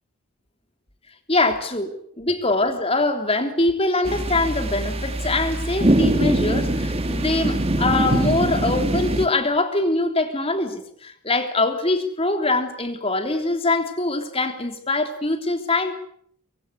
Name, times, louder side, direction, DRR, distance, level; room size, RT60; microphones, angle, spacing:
voice 1, 1.3-16.0, left 2 dB, 25° left, 6 dB, 3.4 m, -23 dB
sound 1, 4.1-9.3, right 1 dB, 25° right, 1.9 m, -22 dB
25.0 x 22.5 x 8.4 m, 0.66 s
head